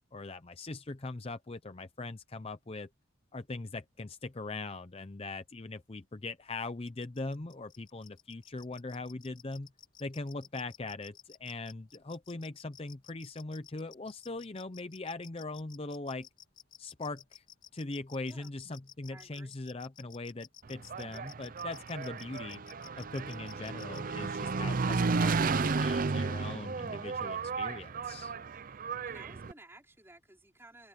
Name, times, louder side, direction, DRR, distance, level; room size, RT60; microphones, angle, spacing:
voice 1, 0.1-2.9 3.3-9.7 10.0-16.3 16.8-17.4 17.7-22.6 23.0-28.3, left 3 dB, 30° left, 0.6 m, -41 dB
sound 1, 6.9-24.0, left 11 dB, 45° left, 2.0 m, -54 dB
voice 2, 19.1-19.5 29.0-30.9, right 2 dB, 10° right, 3.8 m, -55 dB
Engine, 20.7-29.5, right 4 dB, 40° right, 0.5 m, -33 dB
head